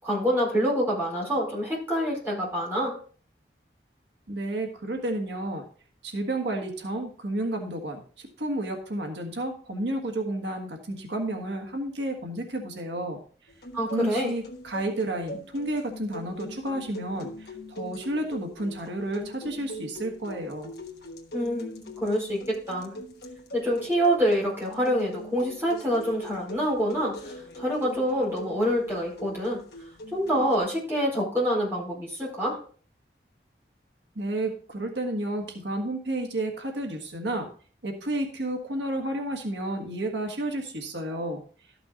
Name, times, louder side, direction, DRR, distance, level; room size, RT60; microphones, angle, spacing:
voice 1, 0.0-2.9 13.7-14.3 21.3-23.0 23.5-29.6 30.1-32.6, equal, 15° right, -5 dB, 4.5 m, -26 dB
voice 2, 4.3-5.6 6.0-13.2 13.9-20.7 34.1-37.5 37.8-41.4, right 1 dB, 90° right, 3 dB, 1.6 m, -31 dB
sound 1, 13.5-30.6, equal, 65° left, 1.2 m, -42 dB
12.5 x 6.0 x 3.8 m, 0.42 s
head